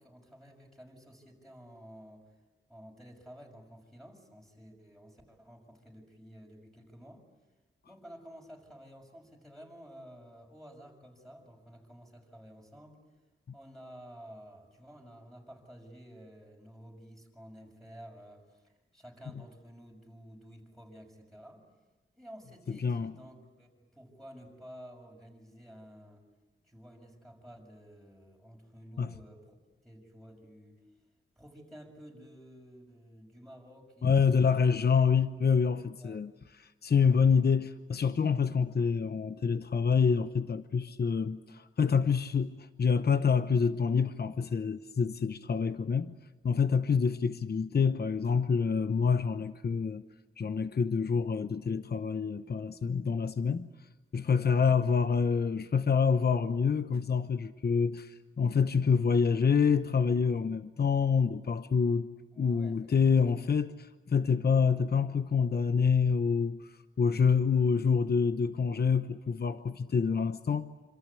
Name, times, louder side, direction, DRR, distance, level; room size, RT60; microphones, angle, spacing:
voice 1, 0.0-2.3 2.7-7.2 7.9-13.0 13.5-21.6 22.2-26.2 26.6-30.8 31.3-34.5 36.0-36.2 54.2-55.0 62.3-63.3, equal, ahead, 6.4 m, -52 dB
voice 2, 22.7-23.1 29.0-29.1 34.0-36.3 36.6-46.1 46.4-50.0 50.4-53.7 54.1-62.1 62.4-70.7, left 6 dB, 50° left, 0.9 m, -27 dB
27.0 x 26.5 x 8.4 m
wide cardioid pair, 120°, 21 cm